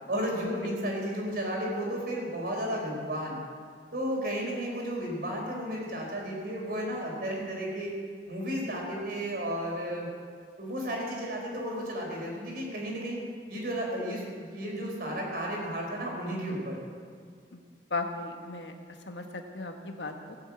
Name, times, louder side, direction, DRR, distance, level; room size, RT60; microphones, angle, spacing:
voice 1, 0.1-3.4 3.9-7.9 8.3-10.1 10.6-13.2 13.5-16.8, equal, 60° right, -1 dB, 4.3 m, -33 dB
voice 2, 0.6-1.0 17.5-17.6 17.9-18.7 19.1-20.3, left 3 dB, 90° left, 4 dB, 1.5 m, -36 dB
18.0 x 7.3 x 8.4 m, 2.1 s
head